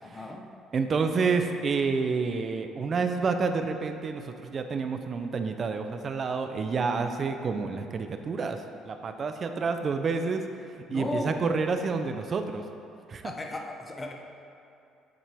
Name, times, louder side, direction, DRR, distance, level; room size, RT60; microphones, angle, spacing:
voice 1, 0.0-0.5 10.9-11.4 13.2-14.1, left 2 dB, 15° left, 2 dB, 0.7 m, -35 dB
voice 2, 0.7-10.4 10.9-12.6 13.1-13.3, right 4 dB, 30° right, 7 dB, 0.5 m, -29 dB
7.5 x 7.1 x 3.5 m, 2.6 s
cardioid pair, 155°, 0 cm